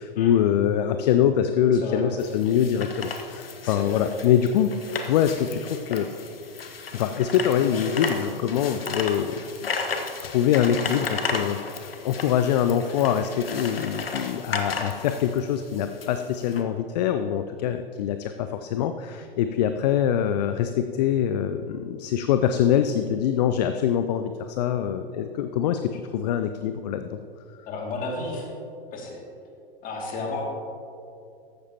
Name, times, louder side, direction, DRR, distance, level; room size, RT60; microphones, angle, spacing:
voice 1, 0.0-4.7 5.0-6.1 6.9-9.7 10.2-27.2, left 9 dB, 45° left, 9 dB, 0.5 m, -24 dB
sound 1, 2.2-16.6, left 4 dB, 75° left, 1.2 m, -34 dB
voice 2, 3.6-4.0 27.7-28.5 28.9-29.2 29.8-30.4, left 3 dB, 30° left, 0 dB, 2.4 m, -32 dB
14.5 x 12.0 x 2.9 m, 2.5 s
figure-of-eight pair, 100°, 29 cm